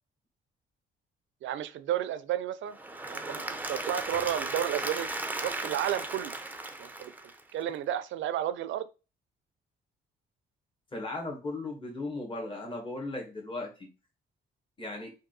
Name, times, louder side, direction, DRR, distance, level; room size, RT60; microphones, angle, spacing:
voice 1, 1.4-2.8 3.1-5.1 5.4-6.3 6.8-7.1 7.5-8.9, right 11 dB, 75° right, 0.5 m, -32 dB
Applause / Crowd, 2.7-7.7, right 2 dB, 10° right, 0.6 m, -36 dB
voice 2, 10.9-13.9 14.8-15.1, left 2 dB, 25° left, 1.6 m, -37 dB
3.7 x 2.6 x 3.9 m
cardioid pair, 90°, 20 cm